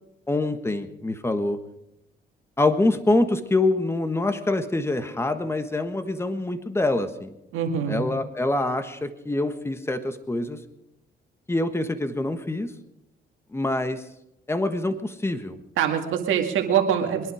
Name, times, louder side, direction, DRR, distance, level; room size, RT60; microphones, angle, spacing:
voice 1, 0.3-1.6 2.6-7.3 7.9-10.6 11.5-12.7 13.5-14.0 14.5-15.6, left 2 dB, 10° left, 10 dB, 1.4 m, -25 dB
voice 2, 7.5-8.1 15.8-17.3, right 8 dB, 85° right, 3 dB, 2.2 m, -24 dB
22.5 x 11.0 x 5.0 m, 0.85 s
cardioid pair, 90°, 20 cm